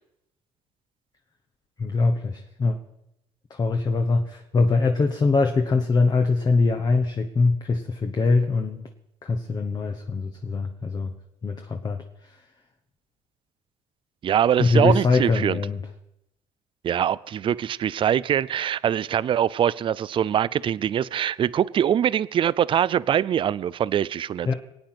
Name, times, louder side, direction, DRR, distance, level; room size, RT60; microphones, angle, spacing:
voice 1, 1.8-2.8 3.5-8.9 9.2-11.1 11.4-12.4 14.6-15.8 24.5-24.6, left 3 dB, 35° left, 1.3 m, -23 dB
voice 2, 14.2-15.6 16.8-24.5, right 9 dB, 45° right, 0.5 m, -23 dB
22.5 x 8.8 x 6.0 m
cardioid pair, 95°, 13 cm